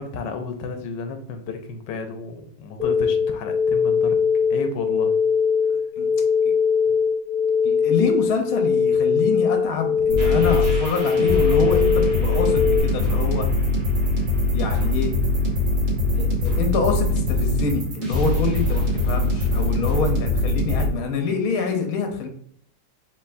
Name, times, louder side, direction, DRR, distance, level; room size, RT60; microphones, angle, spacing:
voice 1, 0.0-4.2 4.5-5.2, left 4 dB, 90° left, 6 dB, 1.3 m, -32 dB
sound 1, 2.8-12.8, left 6 dB, 35° right, 0.9 m, -21 dB
voice 2, 7.6-13.5 14.5-15.1 16.1-22.3, left 4 dB, 65° left, 5 dB, 1.1 m, -26 dB
sound 2, 10.1-20.9, left 2 dB, 60° right, 1.8 m, -22 dB
4.5 x 3.4 x 2.5 m, 0.65 s
omnidirectional pair, 1.9 m